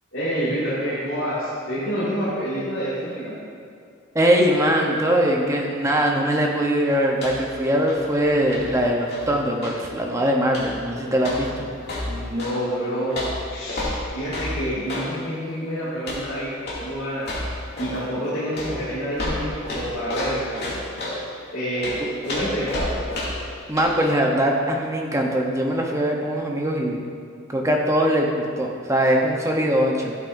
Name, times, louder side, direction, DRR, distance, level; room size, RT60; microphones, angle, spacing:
voice 1, 0.1-3.4 12.0-13.2 13.5-20.6 21.5-21.9 22.2-23.0, equal, 75° left, -12 dB, 2.3 m, -28 dB
voice 2, 4.1-11.7 23.7-27.0 27.5-30.2, equal, 15° right, 0 dB, 0.8 m, -21 dB
sound 1, 7.1-7.5 7.8-9.9 10.5-10.8 11.2-12.6 13.1-15.1 16.0-16.3 16.6-16.9 17.2-18.0 18.5-21.2 21.8-23.5 23.8-23.9, left 1 dB, 50° left, 2.5 m, -31 dB
12.0 x 8.7 x 2.7 m, 2.3 s
head